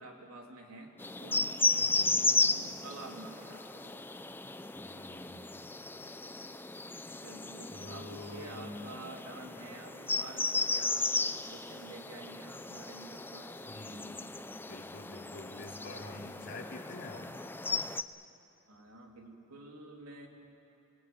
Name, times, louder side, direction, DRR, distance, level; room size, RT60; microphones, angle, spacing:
voice 1, 0.0-2.1 2.4-4.0 7.0-11.1 11.5-13.5 18.7-20.3, right 2 dB, 90° right, 1 dB, 3.3 m, -49 dB
sound 1, 1.0-18.0, left 3 dB, 10° left, 0.5 m, -35 dB
voice 2, 1.8-2.3 4.7-5.6 7.7-8.8 13.6-14.4 14.7-17.3, left 2 dB, 55° left, -1 dB, 3.1 m, -47 dB
24.5 x 21.0 x 9.4 m, 2.9 s
head